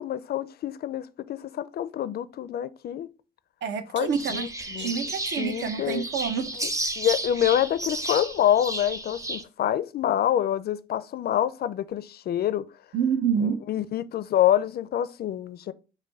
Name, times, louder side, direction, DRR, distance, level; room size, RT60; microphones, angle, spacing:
voice 1, 0.0-3.1 3.9-5.0 5.4-6.0 6.6-6.7 7.0-12.6 13.4-15.7, left 11 dB, 55° left, 0.4 m, -26 dB
voice 2, 3.6-4.4 4.8-6.5 12.9-13.6, right 7 dB, 65° right, 0.8 m, -27 dB
sound 1, 4.1-9.4, right 2 dB, 15° right, 0.6 m, -33 dB
4.8 x 2.2 x 4.5 m
cardioid pair, 90°, 20 cm